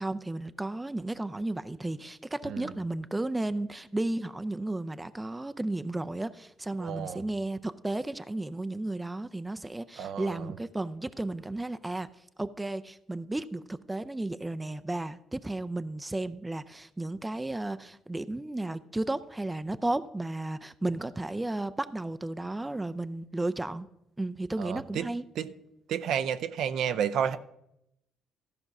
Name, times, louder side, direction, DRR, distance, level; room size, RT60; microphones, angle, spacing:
voice 1, 0.0-12.1 12.4-23.9 24.2-25.2, right 2 dB, 15° right, 0.5 m, -33 dB
voice 2, 6.8-7.2 10.0-10.5 24.6-25.1 25.4-25.5 25.9-27.4, right 8 dB, 75° right, 0.5 m, -31 dB
13.5 x 5.3 x 6.0 m
cardioid pair, 85°, 0 cm